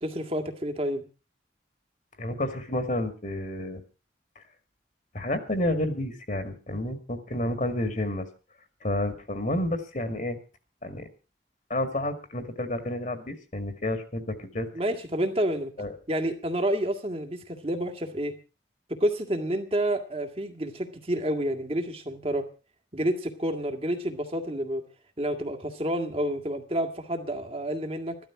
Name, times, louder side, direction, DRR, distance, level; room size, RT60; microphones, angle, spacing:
voice 1, 0.0-1.0 14.7-15.7 16.1-18.4 18.9-22.5 22.9-24.8 25.2-28.2, right 1 dB, 35° right, 6 dB, 2.0 m, -29 dB
voice 2, 2.2-3.8 4.4-4.5 5.1-8.3 8.8-10.4 10.8-11.1 11.7-14.7 15.8-15.9, left 1 dB, 45° left, 8 dB, 2.0 m, -30 dB
14.5 x 12.5 x 5.9 m, 0.34 s
head